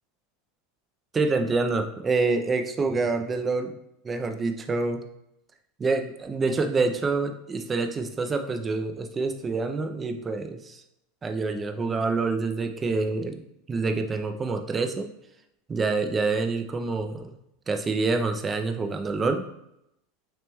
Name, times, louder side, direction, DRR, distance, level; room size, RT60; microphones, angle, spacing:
voice 1, 1.1-3.7 4.0-5.0 5.8-10.8 11.2-13.4 13.7-15.1 15.7-17.3 17.7-19.4, right 3 dB, 15° right, 6 dB, 0.4 m, -27 dB
5.9 x 3.0 x 2.2 m, 0.82 s
supercardioid pair, 155°, 0 cm